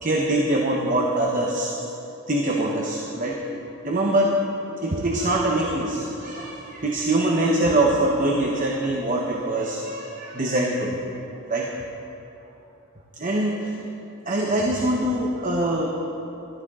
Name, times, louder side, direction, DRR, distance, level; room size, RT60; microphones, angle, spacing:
voice 1, 0.0-2.0 2.3-11.0 11.5-11.7 13.2-13.8 14.3-15.9, right 1 dB, 40° right, -1 dB, 0.9 m, -24 dB
14.0 x 13.0 x 3.7 m, 2.9 s
head